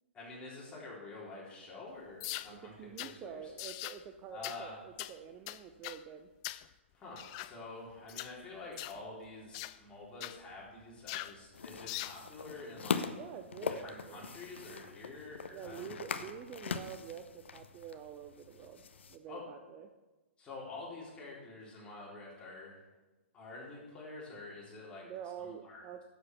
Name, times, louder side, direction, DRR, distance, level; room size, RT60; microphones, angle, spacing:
voice 1, 0.1-3.5 4.3-4.8 6.9-13.1 13.7-16.3 19.3-19.5 20.4-22.8 23.3-25.1 25.4-25.9, left 3 dB, 15° left, -5 dB, 3.8 m, -48 dB
sound 1, 2.2-2.5 3.0-3.1 3.6-4.0 4.4-4.6 5.0-5.1 5.5-6.0 6.4-6.7 7.2-7.5 8.1-8.3 8.8-9.0 9.5-9.8 10.2-10.4 11.1-11.4 11.9-12.2, left 17 dB, 30° left, 0.4 m, -41 dB
voice 2, 2.5-6.3 13.1-14.2 15.5-19.9 25.0-26.0, right 8 dB, 25° right, 6 dB, 0.6 m, -47 dB
sound 2, 11.5-19.2, left 6 dB, 65° left, 0.8 m, -41 dB
11.0 x 7.4 x 6.0 m, 1.2 s
figure-of-eight pair, 120°, 7 cm